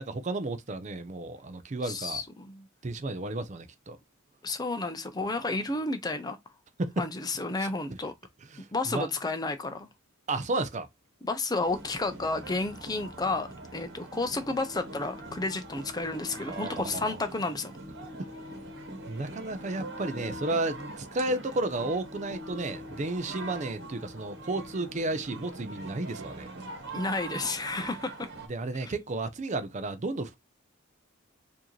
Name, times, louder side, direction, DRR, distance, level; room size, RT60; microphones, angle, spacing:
voice 1, 0.0-2.2 2.8-4.0 6.8-7.1 7.6-7.7 8.5-9.1 10.3-10.9 16.5-17.2 19.1-26.5 28.5-30.4, right 2 dB, 35° right, 0.5 m, -32 dB
voice 2, 1.8-2.7 4.4-6.4 7.0-8.1 8.7-9.9 11.2-17.7 26.9-28.3 28.8-28.9, left 3 dB, 20° left, 0.5 m, -31 dB
sound 1, 11.6-28.5, right 1 dB, 55° right, 1.2 m, -42 dB
4.7 x 2.8 x 3.0 m
head